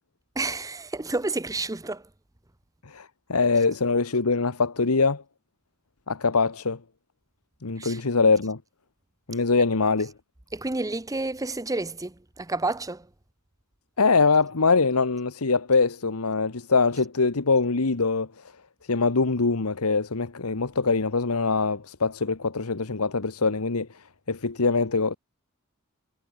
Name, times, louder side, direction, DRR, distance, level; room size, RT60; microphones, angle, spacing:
voice 1, 0.4-2.0 7.8-8.0 10.5-13.1, right 2 dB, 15° right, 0.8 m, -30 dB
voice 2, 2.9-5.2 6.1-6.8 7.6-8.6 9.3-10.1 14.0-18.3 18.9-23.9 24.3-25.2, left 4 dB, 85° left, 1.2 m, -23 dB
head